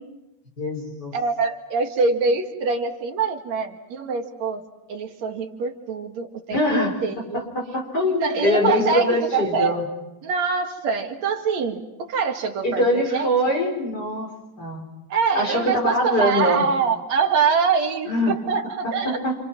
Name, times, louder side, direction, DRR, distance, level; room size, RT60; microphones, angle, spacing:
voice 1, 0.6-1.1 6.5-7.0 7.5-9.8 12.6-14.3 14.6-14.9 15.3-16.6 18.1-18.3 19.0-19.4, left 1 dB, 30° left, 0 dB, 6.0 m, -23 dB
voice 2, 1.1-4.6 4.9-7.5 8.2-9.8 10.2-13.3 15.1-19.2, right 5 dB, 60° right, 3 dB, 3.1 m, -24 dB
29.5 x 27.5 x 6.0 m, 1.0 s
omnidirectional pair, 3.5 m